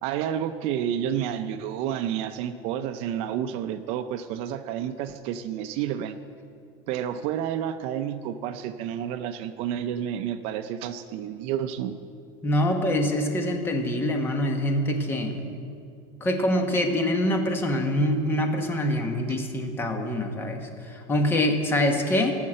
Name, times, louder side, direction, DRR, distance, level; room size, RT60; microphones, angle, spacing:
voice 1, 0.0-6.2 6.9-12.0 15.4-15.6, right 9 dB, 50° right, 10 dB, 0.5 m, -30 dB
voice 2, 12.4-15.4 16.2-22.4, left 1 dB, 15° left, 4 dB, 1.1 m, -25 dB
14.0 x 6.5 x 7.6 m, 2.4 s
cardioid pair, 160°, 13 cm